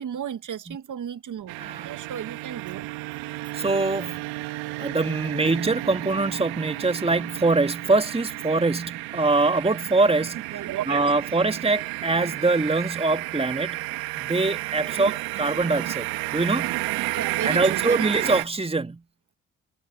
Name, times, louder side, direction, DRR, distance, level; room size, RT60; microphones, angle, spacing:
voice 1, 0.0-2.9 3.3-3.5 10.5-11.1 15.0-15.1 17.1-18.3, right 9 dB, 60° right, 2.0 m, -34 dB
sound 1, 1.5-18.5, right 21 dB, 85° right, 2.1 m, -32 dB
voice 2, 3.5-4.3 4.8-10.4 10.9-13.8 14.2-16.1 16.3-16.8 17.4-19.0, right 3 dB, 15° right, 1.8 m, -23 dB
hypercardioid pair, 50°, 35 cm